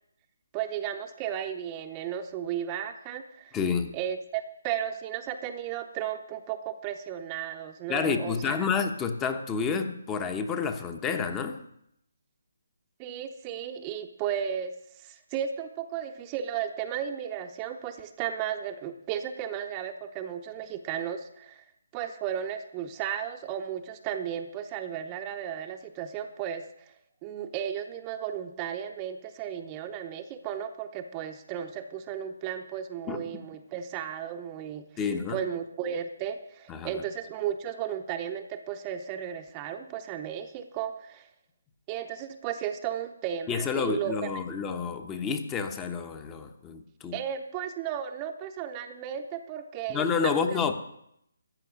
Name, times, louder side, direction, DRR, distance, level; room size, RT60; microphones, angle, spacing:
voice 1, 0.5-3.6 3.9-8.7 13.0-14.7 15.0-21.6 21.9-26.9 27.2-34.9 35.3-41.3 41.9-44.1 47.1-50.6, right 9 dB, 20° right, 7 dB, 0.8 m, -34 dB
voice 2, 3.5-3.9 7.9-11.6 33.1-33.3 35.0-35.4 36.7-37.0 43.5-47.1 49.9-50.7, left 5 dB, 15° left, 8 dB, 1.0 m, -29 dB
14.0 x 5.9 x 9.1 m, 0.75 s
figure-of-eight pair, 150°, 0 cm